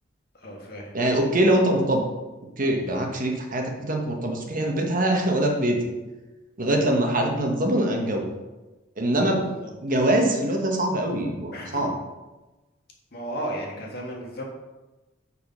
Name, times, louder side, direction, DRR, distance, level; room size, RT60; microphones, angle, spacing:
voice 1, 0.3-0.9 6.8-7.0 9.1-9.7 11.5-11.8 13.1-14.4, right 1 dB, 55° left, -1 dB, 1.7 m, -35 dB
voice 2, 0.9-2.0 2.6-5.9 6.6-8.3 9.0-9.5 9.8-11.9, right 1 dB, 45° right, 2 dB, 1.3 m, -23 dB
6.7 x 5.6 x 5.4 m, 1.1 s
head